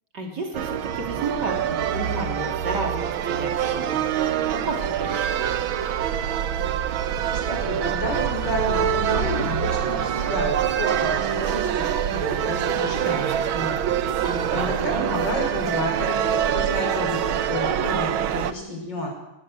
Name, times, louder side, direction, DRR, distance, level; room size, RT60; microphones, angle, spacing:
voice 1, 0.1-4.1 4.5-5.5 14.2-15.1, right 2 dB, 50° right, 2 dB, 3.4 m, -32 dB
sound 1, 0.5-18.5, right 9 dB, 70° right, 1.7 m, -25 dB
sound 2, 3.6-15.5, left 2 dB, 85° left, 5.3 m, -45 dB
voice 2, 7.3-13.8 14.5-19.1, left 1 dB, 55° left, 1 dB, 6.4 m, -31 dB
21.0 x 16.5 x 7.7 m, 0.92 s
omnidirectional pair, 2.4 m